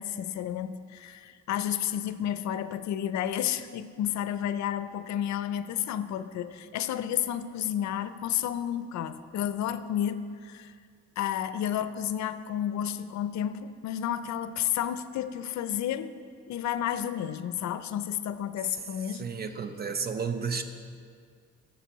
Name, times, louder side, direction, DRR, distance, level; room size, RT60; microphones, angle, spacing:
voice 1, 0.0-10.7 11.2-16.2 16.5-19.3, left 10 dB, 70° left, 12 dB, 0.5 m, -31 dB
voice 2, 19.2-20.6, right 5 dB, 35° right, 8 dB, 0.6 m, -32 dB
13.0 x 7.2 x 3.0 m, 2.1 s
cardioid pair, 90°, 30 cm